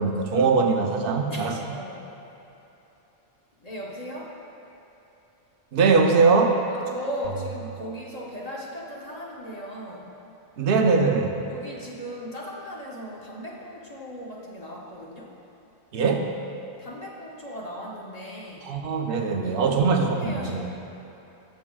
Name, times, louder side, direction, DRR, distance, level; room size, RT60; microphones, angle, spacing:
voice 1, 0.0-1.6 5.7-6.6 10.6-11.4 15.9-16.3 18.7-20.7, right 4 dB, 55° right, 3 dB, 0.8 m, -21 dB
voice 2, 1.3-2.1 3.6-4.4 6.7-10.1 11.5-15.4 16.8-18.8 19.4-20.7, equal, 40° left, -3 dB, 0.8 m, -37 dB
sound 1, 7.2-9.4, right 9 dB, 90° right, 1.2 m, -41 dB
14.5 x 6.3 x 2.3 m, 2.9 s
omnidirectional pair, 1.2 m